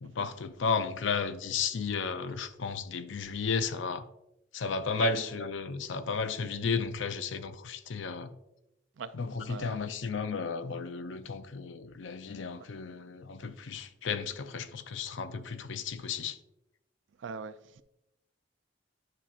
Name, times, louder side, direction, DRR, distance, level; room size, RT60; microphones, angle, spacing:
voice 1, 0.0-4.1 4.5-8.3 9.1-16.4, left 5 dB, 85° left, 0.5 m, -33 dB
voice 2, 6.4-6.8 9.0-9.1 9.4-9.8 12.6-12.7 17.2-17.8, right 6 dB, 80° right, 0.4 m, -41 dB
9.7 x 5.6 x 2.4 m
head